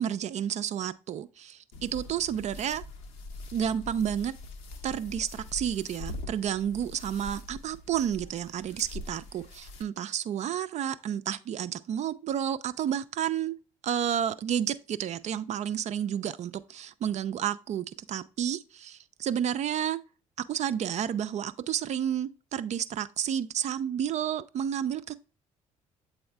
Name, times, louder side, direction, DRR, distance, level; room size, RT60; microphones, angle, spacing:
voice 1, 0.0-2.8 3.5-4.3 4.8-13.6 13.8-20.0 20.5-25.1, right 9 dB, 40° right, 0.4 m, -31 dB
sound 1, 1.7-9.8, left 2 dB, 70° left, 0.9 m, -43 dB
7.7 x 4.1 x 3.3 m
figure-of-eight pair, 50°, 17 cm